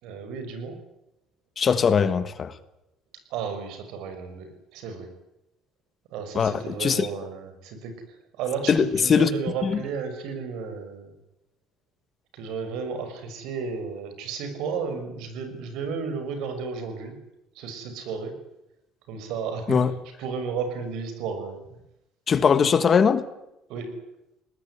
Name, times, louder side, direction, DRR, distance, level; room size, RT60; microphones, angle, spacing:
voice 1, 0.0-0.8 3.3-5.1 6.1-11.2 12.3-17.2 17.5-18.4 19.1-19.8 20.2-21.6 23.7-24.1, right 5 dB, 85° right, 6.2 m, -33 dB
voice 2, 1.6-2.5 6.3-7.1 8.7-9.3 9.6-9.8 19.7-19.9 22.3-23.2, left 6 dB, 30° left, 1.4 m, -21 dB
22.0 x 19.5 x 9.9 m
cardioid pair, 155°, 0 cm